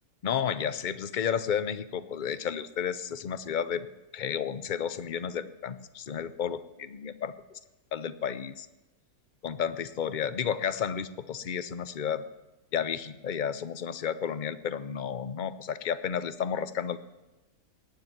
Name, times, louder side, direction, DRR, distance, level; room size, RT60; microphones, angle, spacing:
voice 1, 0.2-3.9 4.1-7.6 7.9-8.7 9.4-12.2 12.7-17.0, left 8 dB, 45° left, 13 dB, 0.6 m, -32 dB
18.5 x 7.2 x 9.4 m, 1.1 s
omnidirectional pair, 1.7 m